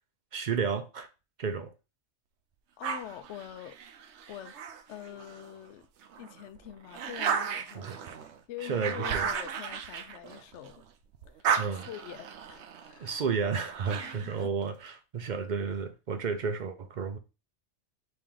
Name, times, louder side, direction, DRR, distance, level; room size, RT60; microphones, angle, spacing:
voice 1, 0.3-1.1 1.4-1.7 7.7-8.0 8.6-9.3 11.6-11.9 13.0-17.2, right 5 dB, 55° right, 0.6 m, -32 dB
voice 2, 2.8-3.8 4.3-4.6 4.9-5.8 6.2-7.9 8.2-10.8 11.4-11.5 11.9-13.1 14.0-14.5, left 11 dB, 75° left, 0.9 m, -45 dB
sound 1, 2.8-5.5 6.0-10.8 11.1-14.4, right 7 dB, 75° right, 0.9 m, -35 dB
4.3 x 3.2 x 3.7 m
omnidirectional pair, 1.2 m